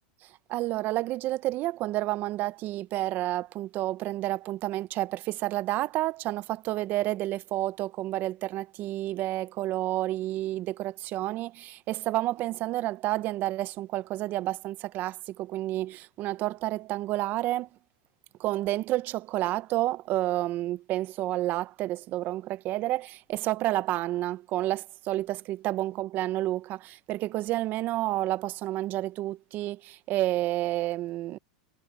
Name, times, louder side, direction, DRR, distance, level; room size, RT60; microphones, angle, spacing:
voice 1, 0.5-17.7 18.4-31.4, right 16 dB, 45° right, 0.8 m, -30 dB
supercardioid pair, 120°, 5 cm